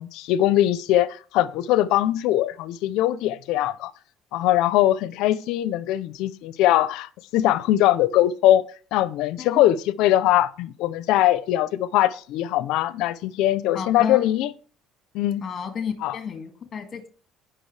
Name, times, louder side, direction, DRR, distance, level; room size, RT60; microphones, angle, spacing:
voice 1, 0.0-3.9 4.3-8.6 8.9-14.5 15.1-15.4 16.0-16.2, left 13 dB, 75° left, 0.6 m, -21 dB
voice 2, 13.7-14.3 15.4-17.1, left 6 dB, 30° left, 1.9 m, -32 dB
17.5 x 6.0 x 3.3 m
cardioid pair, 140°, 0 cm